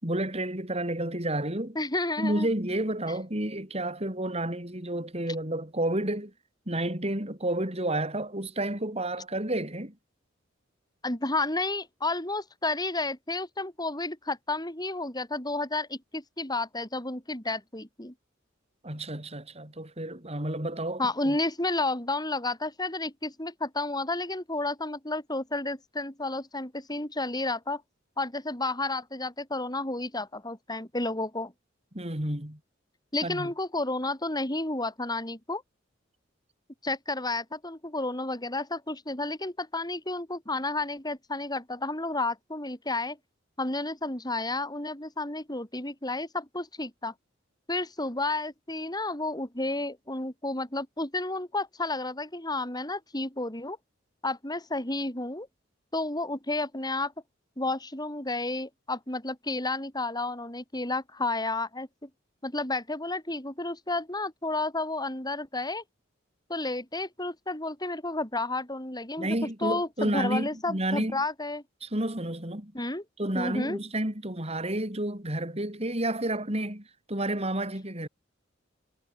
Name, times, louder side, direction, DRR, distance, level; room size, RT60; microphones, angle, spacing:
voice 1, 0.0-1.8 2.2-6.3 6.7-9.9 18.8-21.4 31.9-32.6 33.2-33.5 69.2-71.2 71.8-72.7 73.2-78.1, right 1 dB, 35° right, 6.5 m, -30 dB
voice 2, 1.8-2.5 11.0-18.1 21.0-27.8 28.2-31.5 33.1-35.6 36.8-43.2 43.6-47.1 47.7-53.8 54.2-55.5 55.9-57.1 57.6-62.1 62.4-65.8 66.5-69.3 69.6-71.6 72.7-73.0 73.3-73.8, left 2 dB, 20° left, 7.3 m, -31 dB
head